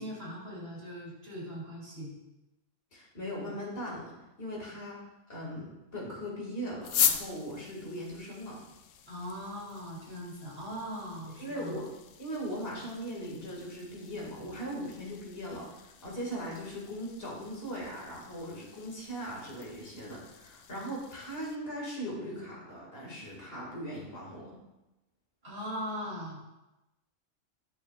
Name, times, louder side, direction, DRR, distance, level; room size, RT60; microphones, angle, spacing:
voice 1, 0.0-2.1 9.1-11.8 25.4-26.4, equal, 50° right, -5 dB, 3.0 m, -40 dB
voice 2, 2.9-4.1 4.4-5.0 5.3-8.6 11.4-11.9 12.2-24.6, equal, 50° left, -3 dB, 2.2 m, -39 dB
sound 1, 6.8-21.6, left 9 dB, 85° left, 1.0 m, -39 dB
10.0 x 6.2 x 2.3 m, 0.99 s
omnidirectional pair, 1.3 m